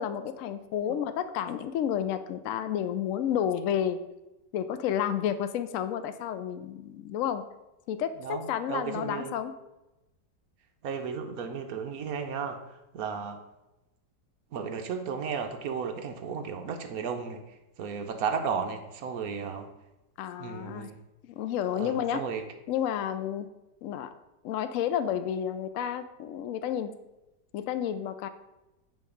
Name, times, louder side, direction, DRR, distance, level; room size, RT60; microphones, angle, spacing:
voice 1, 0.0-4.0 4.5-7.4 7.9-9.5 20.2-20.9 21.2-22.2 22.7-23.5 23.8-24.1 24.4-26.9 27.5-28.3, left 9 dB, 80° left, 10 dB, 0.7 m, -31 dB
voice 2, 8.7-9.3 10.8-12.6 12.9-13.4 14.5-17.4 17.8-19.7 20.4-21.0 21.8-22.4, right 6 dB, 65° right, 6 dB, 1.0 m, -34 dB
9.3 x 3.3 x 4.9 m, 0.99 s
omnidirectional pair, 2.0 m